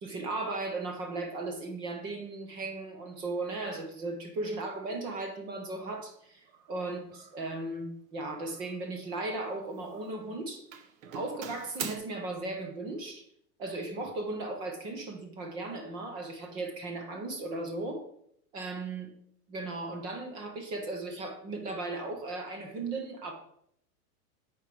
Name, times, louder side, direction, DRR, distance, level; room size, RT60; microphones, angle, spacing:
voice 1, 0.0-10.7 11.1-13.2 13.6-18.0 18.5-19.1 19.5-23.3, right 2 dB, 10° right, 4 dB, 0.4 m, -36 dB
Doorbell, 5.7-5.9 6.5-6.8 7.1-7.5 8.5-9.5 9.8-10.3 10.7-12.0, right 7 dB, 55° right, 1.2 m, -43 dB
8.8 x 4.5 x 4.7 m, 0.70 s
supercardioid pair, 150°, 47 cm